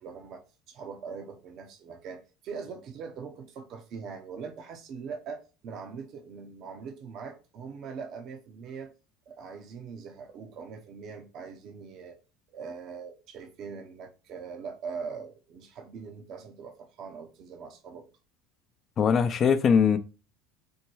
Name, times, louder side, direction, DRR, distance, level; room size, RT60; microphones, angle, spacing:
voice 1, 0.0-8.9 9.3-12.2 12.5-18.1, right 5 dB, 55° right, 0.8 m, -42 dB
voice 2, 19.0-20.0, left 6 dB, 40° left, 0.6 m, -21 dB
4.5 x 2.2 x 4.6 m
hypercardioid pair, 90°, 0 cm